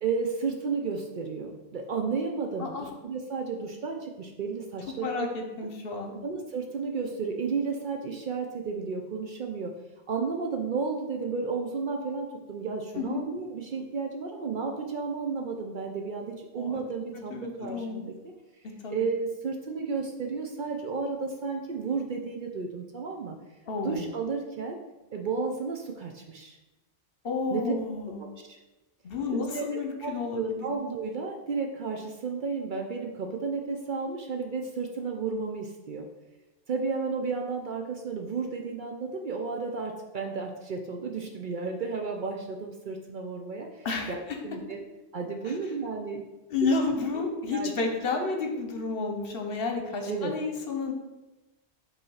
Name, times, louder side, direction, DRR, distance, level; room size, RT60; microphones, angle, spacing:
voice 1, 0.0-5.4 6.1-9.7 10.1-18.1 18.9-23.4 23.8-24.8 25.1-26.6 27.5-27.7 28.2-28.6 29.3-29.7 30.0-36.1 36.7-44.8 45.1-46.2 47.5-47.7 50.1-50.3, right 4 dB, 55° right, 2 dB, 0.6 m, -32 dB
voice 2, 5.0-6.1 13.0-13.2 16.6-16.8 17.3-18.0 18.6-19.0 23.7-24.1 27.2-28.2 29.0-30.7 43.8-44.4 45.4-45.5 46.5-50.9, left 4 dB, 60° left, 3 dB, 1.0 m, -31 dB
5.4 x 3.2 x 5.5 m, 1.1 s
omnidirectional pair, 1.1 m